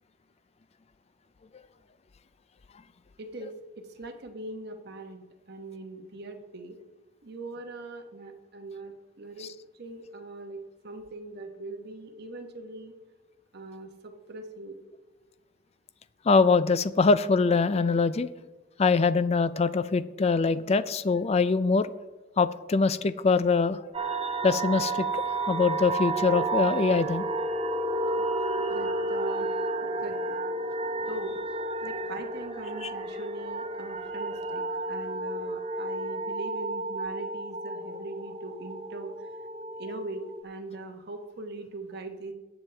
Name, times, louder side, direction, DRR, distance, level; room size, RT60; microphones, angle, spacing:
voice 1, 3.2-6.8 7.2-9.5 9.7-12.9 13.5-14.8 28.7-29.6 30.0-30.2 31.1-31.4 31.8-34.6 34.9-39.1 39.8-42.3, right 2 dB, 55° right, 4 dB, 1.1 m, -41 dB
voice 2, 16.3-18.3 18.8-21.9 22.4-23.8 24.4-27.2 28.6-28.7, left 4 dB, 35° left, 15 dB, 0.4 m, -23 dB
sound 1, 23.9-40.4, right 2 dB, 30° right, 0.6 m, -32 dB
18.0 x 7.1 x 3.3 m, 1.2 s
head